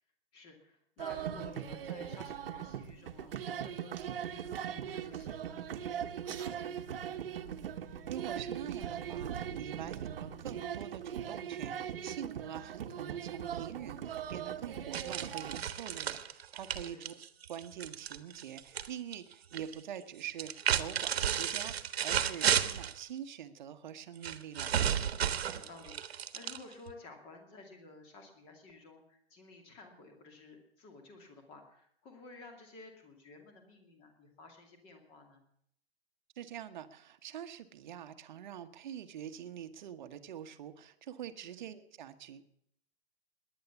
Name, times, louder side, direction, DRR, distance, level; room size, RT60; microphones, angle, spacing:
voice 1, 0.3-7.3 16.8-17.0 25.1-35.4 41.4-41.7, left 3 dB, 20° left, 4 dB, 2.4 m, -54 dB
sound 1, 1.0-15.6, right 9 dB, 65° right, 1.3 m, -40 dB
voice 2, 8.1-17.2 17.5-24.7 36.4-42.4, right 9 dB, 50° right, 9 dB, 1.3 m, -45 dB
sound 2, 14.9-18.9 19.1-19.7 20.3-23.0 24.2-26.9, right 9 dB, 85° right, 1.5 m, -33 dB
19.0 x 10.5 x 7.1 m, 0.70 s
hypercardioid pair, 175°, 30 cm